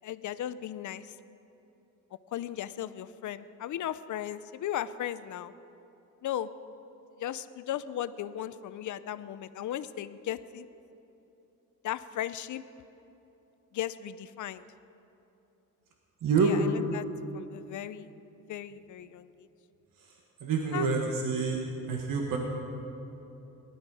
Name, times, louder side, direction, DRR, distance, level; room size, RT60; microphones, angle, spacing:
voice 1, 0.0-1.2 2.3-5.5 6.2-6.5 7.2-10.7 11.8-12.6 13.7-14.7 16.4-17.1 17.3-18.2 18.5-19.3 20.7-20.9, left 11 dB, 65° left, 14 dB, 0.6 m, -36 dB
voice 2, 16.2-16.5 20.0-20.1 20.4-21.6 21.9-22.4, right 5 dB, 75° right, 0 dB, 1.6 m, -27 dB
19.0 x 12.0 x 4.9 m, 3.0 s
cardioid pair, 130°, 33 cm